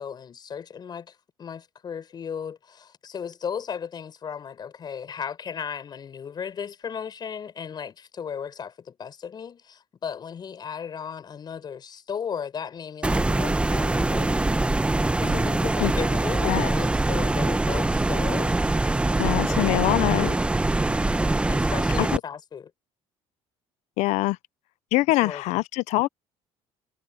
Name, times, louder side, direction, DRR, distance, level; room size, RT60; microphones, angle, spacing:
voice 1, 0.0-14.9 15.2-20.5 20.7-22.7 25.2-25.4, left 7 dB, 40° left, 6.0 m, -36 dB
sound 1, 13.0-22.2, right 2 dB, 10° right, 0.9 m, -23 dB
voice 2, 19.2-20.3 22.0-22.2 24.0-24.4 24.9-26.1, left 20 dB, 75° left, 0.5 m, -23 dB
cardioid pair, 120°, 12 cm